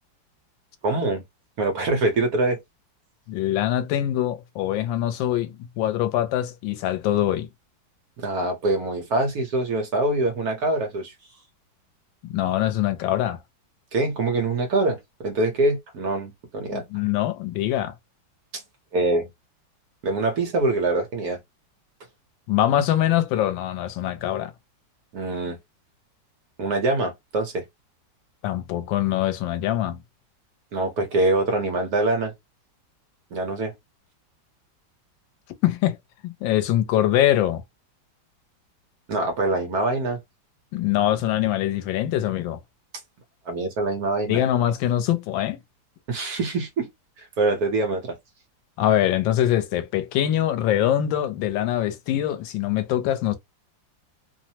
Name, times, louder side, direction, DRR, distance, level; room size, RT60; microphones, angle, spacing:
voice 1, 0.8-1.2 1.6-2.6 8.2-11.1 13.9-16.8 18.5-18.6 18.9-19.3 20.0-21.4 25.1-25.6 26.6-27.6 30.7-32.3 33.3-33.7 39.1-40.2 43.5-44.4 46.1-46.9 47.2-48.2, right 2 dB, 60° right, 1.2 m, -24 dB
voice 2, 3.3-7.5 12.3-13.4 16.7-17.9 22.5-24.5 28.4-30.0 35.6-36.0 36.2-37.6 40.7-42.6 44.3-45.6 48.8-53.4, left 12 dB, 80° left, 1.3 m, -23 dB
3.2 x 2.0 x 2.7 m
omnidirectional pair, 2.1 m